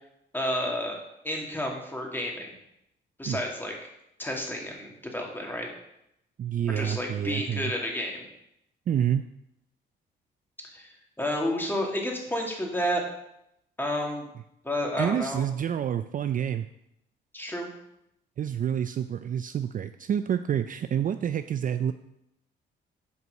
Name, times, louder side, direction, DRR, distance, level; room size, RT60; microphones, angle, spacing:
voice 1, 0.3-2.5 3.2-3.7 4.2-5.7 6.7-8.2 10.7-13.0 13.8-14.2 14.6-15.4 17.3-17.7, left 1 dB, 10° left, 0 dB, 2.3 m, -30 dB
voice 2, 6.4-7.7 8.9-9.3 15.0-16.7 18.4-21.9, right 9 dB, 45° right, 10 dB, 0.4 m, -28 dB
8.2 x 4.7 x 6.4 m, 0.80 s
cardioid pair, 90°, 20 cm